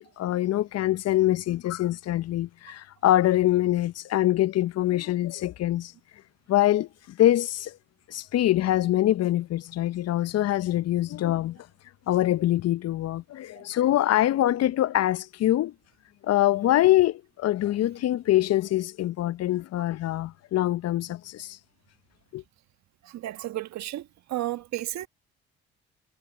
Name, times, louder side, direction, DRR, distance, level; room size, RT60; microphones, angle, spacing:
voice 1, 0.0-5.9 6.5-7.8 8.1-11.6 12.1-15.7 16.2-21.6 22.3-22.4, left 14 dB, 55° left, 0.8 m, -24 dB
voice 2, 23.1-24.0 24.3-25.1, right 15 dB, 65° right, 1.8 m, -32 dB
hypercardioid pair, 50°, 30 cm